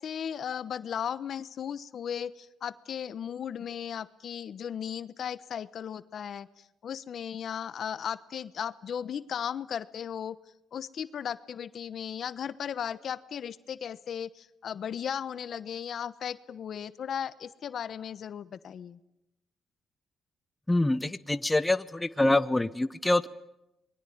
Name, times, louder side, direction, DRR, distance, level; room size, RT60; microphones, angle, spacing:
voice 1, 0.0-10.4 10.7-19.0, left 8 dB, 60° left, 15 dB, 1.1 m, -36 dB
voice 2, 20.7-23.3, left 2 dB, 10° left, 13 dB, 0.9 m, -25 dB
28.0 x 22.0 x 9.5 m, 0.89 s
cardioid pair, 90°, 0 cm